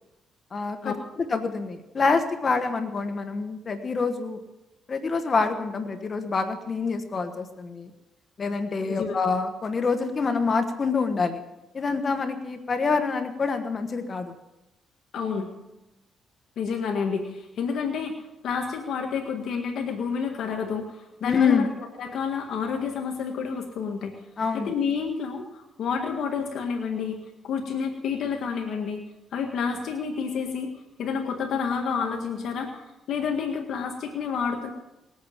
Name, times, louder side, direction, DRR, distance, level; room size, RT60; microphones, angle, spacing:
voice 1, 0.5-4.4 4.9-7.9 8.4-11.4 11.7-14.3 21.2-21.7 24.4-24.7, left 4 dB, 40° left, 7 dB, 1.4 m, -26 dB
voice 2, 8.9-9.2 15.1-15.5 16.6-24.1 24.5-27.2 27.4-29.0 29.3-30.7 31.0-34.7, left 6 dB, 70° left, 2 dB, 1.8 m, -29 dB
20.0 x 8.6 x 7.3 m, 0.99 s
cardioid pair, 90°, 0 cm